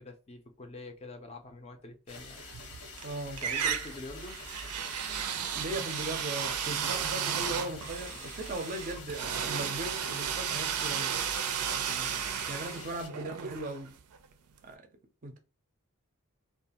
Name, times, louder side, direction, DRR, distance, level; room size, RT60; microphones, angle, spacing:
voice 1, 0.0-2.4 3.4-4.4 11.8-12.2, left 2 dB, 25° left, 0.4 m, -45 dB
sound 1, 2.1-13.1, left 3 dB, 85° left, 1.1 m, -47 dB
sound 2, 2.5-3.1 3.4-14.2, right 8 dB, 90° right, 0.4 m, -34 dB
voice 2, 3.0-3.4 5.5-11.1 12.5-14.0 14.6-14.9 15.2-15.4, right 2 dB, 35° right, 0.5 m, -38 dB
sound 3, 3.3-12.4, right 1 dB, 65° left, 0.7 m, -52 dB
2.5 x 2.2 x 2.8 m
head